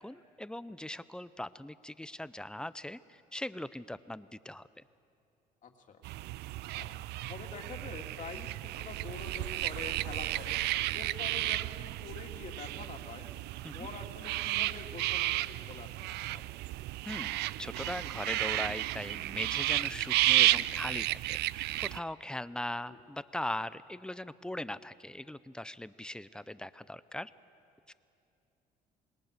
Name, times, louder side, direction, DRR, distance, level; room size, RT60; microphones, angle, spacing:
voice 1, 0.0-4.7 13.6-13.9 17.1-27.3 27.9-28.0, left 1 dB, 5° left, 15 dB, 0.5 m, -40 dB
voice 2, 5.6-6.0 6.8-10.6 10.9-13.3 13.7-16.5 22.9-23.0, left 5 dB, 50° left, 3 dB, 2.5 m, -46 dB
sound 1, 6.0-22.0, right 17 dB, 80° right, 0.4 m, -33 dB
27.5 x 21.0 x 6.6 m, 2.8 s
cardioid pair, 110°, 17 cm